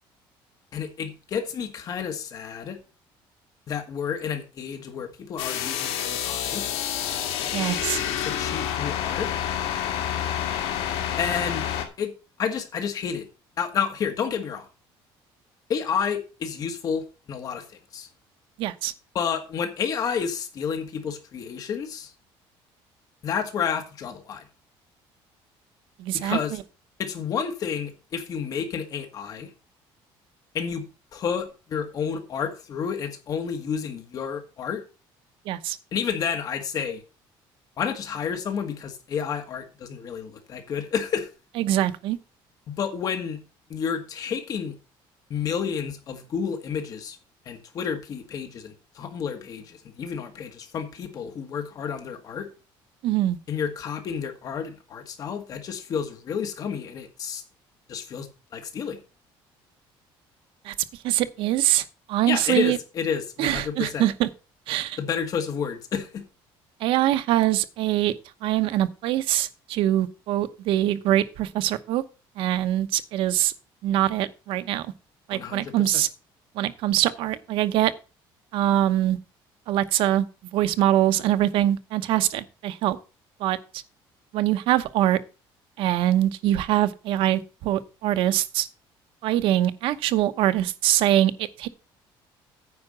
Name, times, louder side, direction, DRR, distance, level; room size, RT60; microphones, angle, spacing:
voice 1, 0.7-2.8 3.7-6.7 8.2-9.3 11.2-11.7 12.0-12.1 12.4-13.3 13.6-14.7 15.7-17.7 17.9-18.1 19.1-22.1 23.2-24.4 26.1-26.5 27.0-29.5 30.5-30.9 31.1-34.8 35.9-37.0 37.8-41.3 42.7-43.4 43.7-44.7 45.3-47.2 47.5-52.5 53.5-57.4 57.9-58.3 58.5-59.0 62.3-64.1 65.0-66.2 75.3-76.0, left 7 dB, 40° left, 1.8 m, -30 dB
sound 1, 5.4-11.8, left 10 dB, 80° left, 2.1 m, -28 dB
voice 2, 7.5-8.0 18.6-18.9 26.0-26.6 35.5-35.8 41.6-42.2 53.0-53.4 60.6-60.7 61.0-62.8 63.4-64.3 64.7-65.0 66.8-68.1 68.4-72.0 72.4-73.5 73.8-74.9 75.3-76.1 76.5-77.9 78.5-79.2 79.7-80.2 80.5-83.0 83.4-83.8 84.3-85.2 85.8-88.7 89.2-91.7, right 13 dB, 65° right, 0.9 m, -23 dB
9.6 x 4.8 x 7.4 m
cardioid pair, 160°, 10 cm